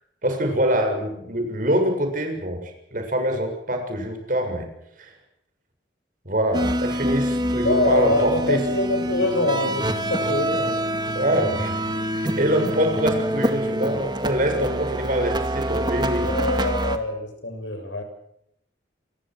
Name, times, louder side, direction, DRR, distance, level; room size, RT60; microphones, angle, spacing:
voice 1, 0.2-4.7 5.0-5.1 6.3-8.6 11.1-11.8 12.1-16.3, right 1 dB, 45° right, 4 dB, 7.1 m, -24 dB
sound 1, 6.5-17.0, right 1 dB, 25° right, 2.1 m, -26 dB
voice 2, 7.6-10.8 16.2-18.0, left 2 dB, 90° left, 6 dB, 7.0 m, -24 dB
27.5 x 22.5 x 6.3 m, 0.77 s
head